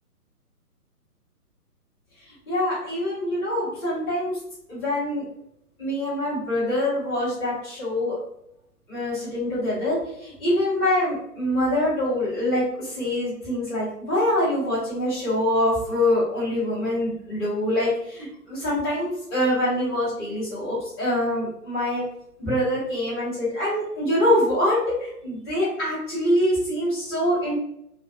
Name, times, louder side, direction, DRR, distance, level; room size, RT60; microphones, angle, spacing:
voice 1, 2.5-4.4 4.7-5.2 5.8-8.2 8.9-22.0 22.4-27.6, left 1 dB, 15° left, -10 dB, 0.9 m, -24 dB
2.4 x 2.3 x 2.2 m, 0.76 s
figure-of-eight pair, 135°, 47 cm